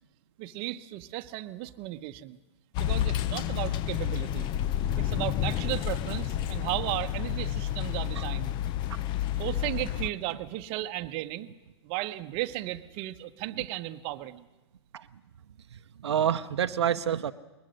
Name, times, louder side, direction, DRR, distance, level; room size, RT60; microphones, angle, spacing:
voice 1, 0.4-2.4 2.8-4.5 5.0-8.5 9.3-11.5 11.8-14.4, right 16 dB, 40° right, 10 dB, 0.9 m, -35 dB
sound 1, 2.7-10.1, left 11 dB, 30° left, 0.6 m, -30 dB
voice 2, 16.0-17.3, right 9 dB, 75° right, 10 dB, 0.7 m, -27 dB
21.0 x 20.5 x 6.4 m, 1.1 s
hypercardioid pair, 115°, 14 cm